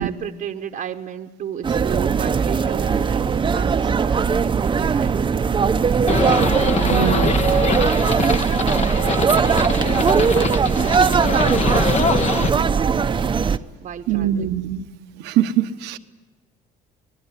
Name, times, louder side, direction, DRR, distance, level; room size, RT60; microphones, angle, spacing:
voice 1, 0.0-6.4 7.0-7.9 8.2-9.0 9.4-14.6, right 9 dB, 55° right, 4 dB, 1.1 m, -35 dB
sound 1, 1.6-13.6, right 6 dB, 30° right, 0.8 m, -19 dB
Livestock farm animals working animals, 6.1-12.5, left 5 dB, 40° left, 1.3 m, -24 dB
voice 2, 6.9-7.3 14.1-14.8 15.2-16.0, right 11 dB, 90° right, 10 dB, 1.2 m, -22 dB
25.5 x 20.0 x 9.9 m, 1.2 s
cardioid pair, 110°, 17 cm